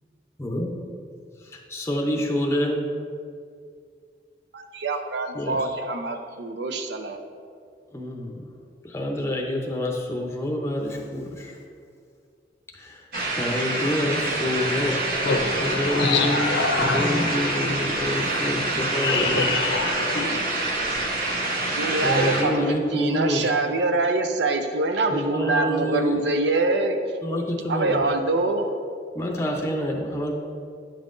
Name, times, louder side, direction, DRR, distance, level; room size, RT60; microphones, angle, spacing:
voice 1, 0.4-0.8 1.4-2.8 5.3-5.8 7.9-8.5 8.8-11.6 12.7-13.0 13.3-15.0 15.6-16.5 16.8-19.6 22.0-23.5 25.1-26.2 27.2-28.1 29.1-30.3, left 1 dB, 15° left, 0.6 m, -27 dB
voice 2, 4.5-7.2 21.7-27.0 27.7-28.7, right 3 dB, 75° right, 0.5 m, -24 dB
sound 1, 13.1-22.4, right 2 dB, 55° right, 0.9 m, -26 dB
voice 3, 15.2-20.4, left 3 dB, 80° left, 0.6 m, -26 dB
9.0 x 5.5 x 2.6 m
head